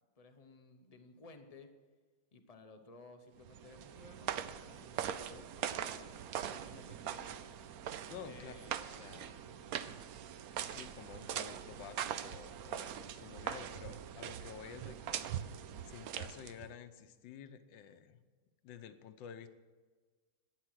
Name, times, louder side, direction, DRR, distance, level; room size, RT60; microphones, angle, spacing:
voice 1, 0.2-1.7 2.3-5.7 6.4-7.5 8.2-8.8, left 3 dB, 45° left, 7 dB, 0.4 m, -57 dB
sound 1, 3.4-16.7, right 9 dB, 70° right, 0.9 m, -42 dB
voice 2, 8.1-8.5 8.9-9.5 10.6-15.3 15.8-18.2 18.6-19.5, left 8 dB, 75° left, 10 dB, 1.5 m, -51 dB
12.0 x 9.7 x 6.3 m, 1.4 s
omnidirectional pair, 2.1 m